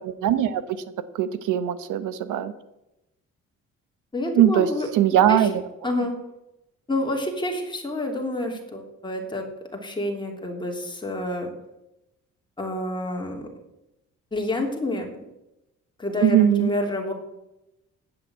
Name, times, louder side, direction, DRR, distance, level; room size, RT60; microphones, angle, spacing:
voice 1, 0.0-0.6 1.1-2.5 4.3-5.6 16.2-16.7, right 10 dB, 85° right, 13 dB, 1.0 m, -20 dB
voice 2, 4.1-4.9 5.3-5.5 5.8-6.1 6.9-11.5 12.6-13.5 14.3-15.1 16.0-17.1, left 1 dB, 15° left, 0 dB, 3.0 m, -28 dB
9.3 x 7.6 x 8.0 m, 0.91 s
cardioid pair, 90°, 30 cm